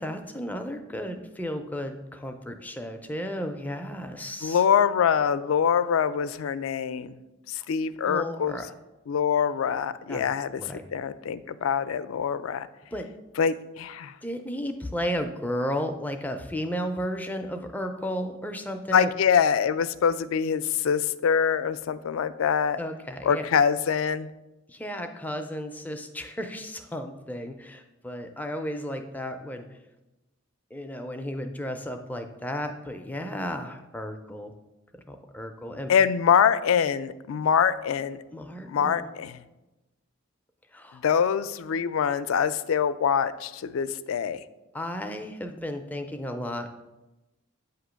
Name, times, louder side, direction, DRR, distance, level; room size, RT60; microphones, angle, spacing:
voice 1, 0.0-4.6 7.6-7.7 8.0-8.7 10.1-10.3 10.6-10.8 12.9-13.1 14.2-19.1 22.7-23.4 24.7-29.8 30.7-34.5 35.1-35.9 38.3-39.1 40.7-41.0 44.7-46.7, equal, 10° left, 5 dB, 0.4 m, -33 dB
voice 2, 4.4-7.2 7.5-8.6 9.1-10.6 10.9-12.7 13.4-14.1 18.9-22.8 23.2-24.3 35.9-38.2 38.6-39.4 41.0-44.4, left 7 dB, 80° left, 13 dB, 0.4 m, -24 dB
8.3 x 2.9 x 6.2 m, 1.0 s
head